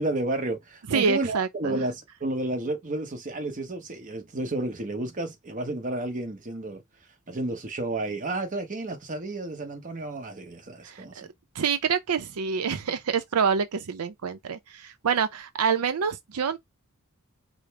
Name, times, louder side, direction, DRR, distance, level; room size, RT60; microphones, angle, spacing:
voice 1, 0.0-6.8 7.3-11.3, right 2 dB, 35° right, 0.9 m, -31 dB
voice 2, 0.9-1.8 10.8-11.3 11.5-16.6, right 6 dB, 85° right, 0.5 m, -27 dB
5.0 x 2.0 x 4.6 m
head